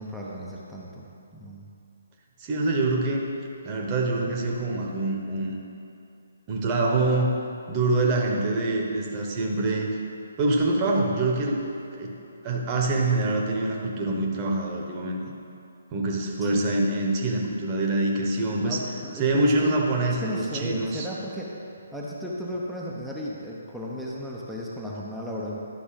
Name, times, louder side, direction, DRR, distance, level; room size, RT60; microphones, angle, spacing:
voice 1, 0.0-1.7 16.4-16.6 18.6-21.5 21.9-25.6, equal, ahead, -6 dB, 0.8 m, -35 dB
voice 2, 2.4-3.3 3.6-5.6 6.5-7.3 7.7-9.9 10.4-11.6 12.0-12.1 12.4-15.2 15.9-18.8 19.2-21.1, right 2 dB, 25° right, -1 dB, 1.1 m, -25 dB
11.5 x 5.7 x 4.0 m, 2.7 s
figure-of-eight pair, 135°, 0 cm